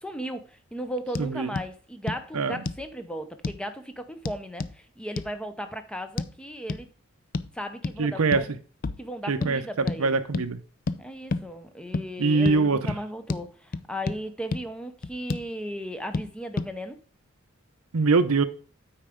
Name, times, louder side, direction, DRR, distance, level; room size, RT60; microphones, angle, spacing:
voice 1, 0.0-6.9 7.5-8.5 9.0-10.2 11.0-17.0, equal, 5° left, 0.7 m, -36 dB
sound 1, 1.1-1.3 1.6-1.7 2.1-2.2 2.7-2.9 3.4-3.6 4.3-4.8 5.2-5.3 6.2-6.3 6.7-6.8 7.3-7.5 7.8-8.0 8.3-8.5 8.8-9.0 9.4-9.5 9.9-10.0 10.3-10.5 10.9-11.0 11.3-11.5 11.9-12.1 12.5-12.6 12.9-13.0 13.3-13.4 13.7-14.2 14.5-14.6 15.0-15.5 16.1-16.3 16.6-16.7, left 3 dB, 40° left, 0.4 m, -30 dB
voice 2, 1.2-1.5 2.3-2.6 8.0-8.4 9.3-9.6 10.0-10.6 12.2-12.9 17.9-18.4, right 4 dB, 85° right, 0.7 m, -23 dB
8.9 x 4.5 x 5.0 m
head